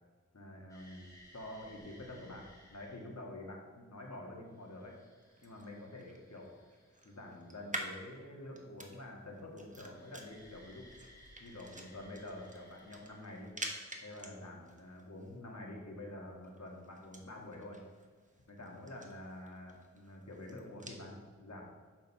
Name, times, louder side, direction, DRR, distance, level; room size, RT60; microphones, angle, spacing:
voice 1, 0.3-1.1 1.3-5.0 5.4-6.5 7.0-10.9 11.4-13.6 14.0-17.8 18.5-21.6, left 1 dB, 60° left, 0 dB, 1.6 m, -48 dB
sound 1, 0.7-3.2 4.3-8.2 9.8-13.8 16.8-16.9 18.0-18.4, equal, 10° left, 2.5 m, -61 dB
sound 2, 5.2-21.0, right 1 dB, 25° right, 1.1 m, -50 dB
7.2 x 5.3 x 5.4 m, 1.5 s
wide cardioid pair, 60°, 30 cm